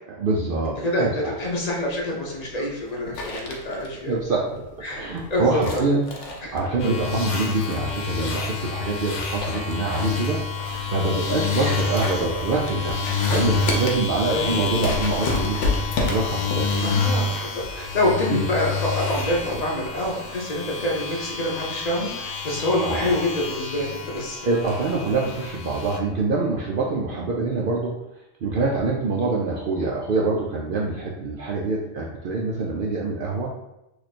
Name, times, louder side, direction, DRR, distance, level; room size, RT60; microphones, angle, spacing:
voice 1, 0.2-1.4 3.1-3.2 4.1-4.6 4.9-6.0 6.5-10.4 10.9-13.0 13.3-15.6 16.0-16.9 18.3-18.4 22.8-23.1 24.4-27.9 28.4-33.5, right 3 dB, 70° right, -4 dB, 0.5 m, -25 dB
voice 2, 0.8-4.1 4.8-5.0 5.3-5.8 6.4-6.5 10.7-10.8 14.3-14.6 16.8-24.4, left 1 dB, 40° left, -3 dB, 0.7 m, -26 dB
sound 1, 1.4-20.1, left 2 dB, 65° left, 1.0 m, -32 dB
sound 2, 6.8-26.0, left 4 dB, 85° left, 1.2 m, -28 dB
3.0 x 2.4 x 4.1 m, 0.90 s
omnidirectional pair, 1.4 m